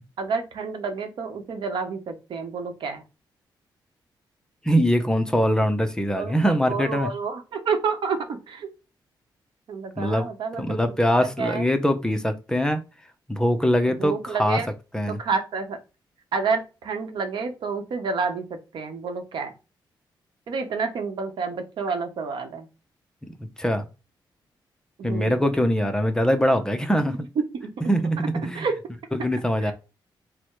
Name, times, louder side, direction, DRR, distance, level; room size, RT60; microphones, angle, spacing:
voice 1, 0.2-3.0 6.1-8.7 9.7-11.6 14.0-14.7 15.1-15.8 16.3-19.5 20.5-22.7 25.0-25.4 27.5-27.7 28.5-28.8 29.6-29.7, right 5 dB, 75° right, 6 dB, 0.9 m, -29 dB
voice 2, 4.7-7.1 10.0-10.3 10.6-12.8 13.3-14.6 14.9-15.2 23.6-23.9 25.0-27.1 27.9-28.7 29.1-29.7, equal, 10° left, 7 dB, 0.5 m, -22 dB
4.6 x 2.1 x 4.5 m, 0.30 s
cardioid pair, 110°, 8 cm